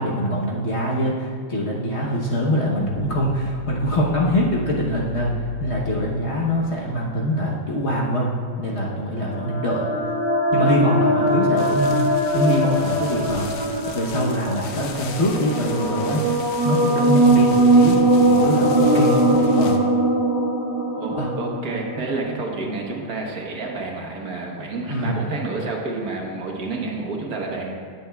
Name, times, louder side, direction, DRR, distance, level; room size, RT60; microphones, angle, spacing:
voice 1, 0.0-8.3 8.6-9.9 10.5-12.0 12.3-13.5 13.9-16.2 16.6-19.8 21.1-21.3 24.8-25.2, equal, 45° left, -3 dB, 1.1 m, -23 dB
sound 1, 2.6-7.2, left 5 dB, 25° left, 2.3 m, -35 dB
sound 2, 9.2-22.8, right 1 dB, 25° right, 0.9 m, -20 dB
sound 3, 11.6-19.8, left 5 dB, 65° left, 1.2 m, -38 dB
voice 2, 21.0-27.7, right 3 dB, 60° right, 0 dB, 1.5 m, -29 dB
18.0 x 6.9 x 2.3 m, 2.1 s
omnidirectional pair, 1.8 m